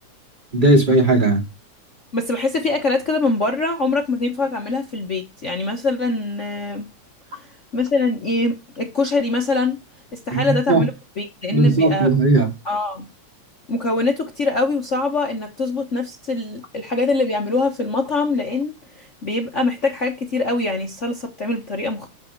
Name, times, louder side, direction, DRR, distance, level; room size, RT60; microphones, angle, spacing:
voice 1, 0.5-1.4 10.3-10.8 11.5-12.5, right 2 dB, 20° right, 2.1 m, -16 dB
voice 2, 2.1-6.9 7.3-7.5 7.7-9.8 10.1-10.9 11.2-12.1 12.6-13.1 13.7-22.1, left 3 dB, 65° left, 0.7 m, -23 dB
8.9 x 7.1 x 4.6 m
omnidirectional pair, 3.4 m